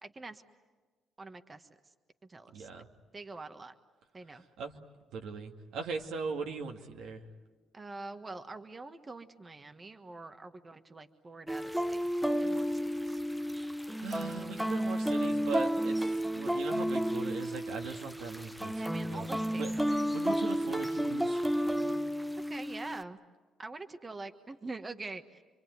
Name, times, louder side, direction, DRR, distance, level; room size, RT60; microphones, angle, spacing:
voice 1, 0.0-0.4 1.2-1.7 2.2-2.8 3.1-3.7 4.1-4.4 7.7-12.1 12.4-13.2 18.7-20.0 22.5-23.2 23.6-25.4, right 3 dB, 30° right, 8 dB, 1.4 m, -45 dB
voice 2, 2.5-2.9 4.6-4.7 5.1-7.2 14.0-19.3 19.6-19.7 20.1-21.4, right 5 dB, 80° right, 2 dB, 2.2 m, -39 dB
sound 1, 11.5-23.0, equal, 5° right, 0.8 m, -32 dB
27.0 x 23.5 x 9.4 m, 1.4 s
cardioid pair, 80°, 0 cm